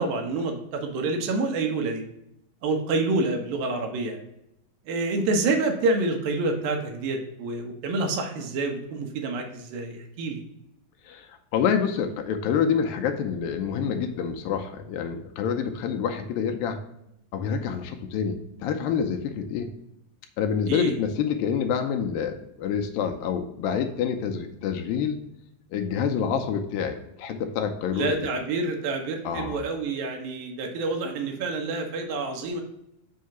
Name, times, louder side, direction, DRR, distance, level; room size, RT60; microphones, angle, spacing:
voice 1, 0.0-2.0 2.6-4.2 4.9-10.4 20.7-20.9 27.9-32.6, right 3 dB, 75° right, 3 dB, 2.6 m, -27 dB
voice 2, 11.5-16.8 17.3-19.7 20.4-25.2 25.7-28.2 29.2-29.6, left 7 dB, 80° left, 5 dB, 2.3 m, -27 dB
6.3 x 2.8 x 5.7 m, 0.81 s
omnidirectional pair, 4.2 m